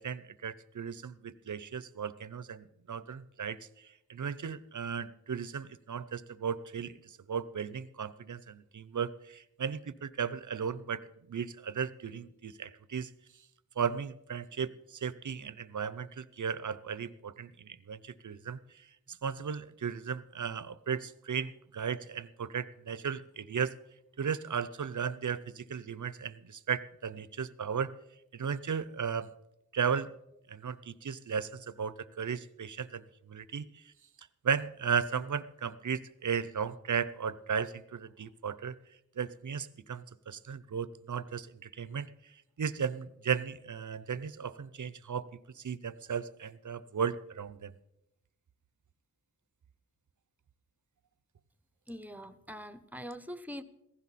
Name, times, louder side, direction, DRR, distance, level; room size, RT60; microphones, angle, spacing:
voice 1, 0.0-13.1 13.8-23.7 24.2-27.9 28.3-29.3 29.7-30.1 30.5-33.9 34.2-38.7 39.2-42.1 42.6-47.7, right 7 dB, 55° right, 17 dB, 0.7 m, -36 dB
voice 2, 51.9-53.6, equal, 5° right, 13 dB, 0.9 m, -43 dB
16.0 x 15.5 x 4.2 m, 0.88 s
wide cardioid pair, 65°, 36 cm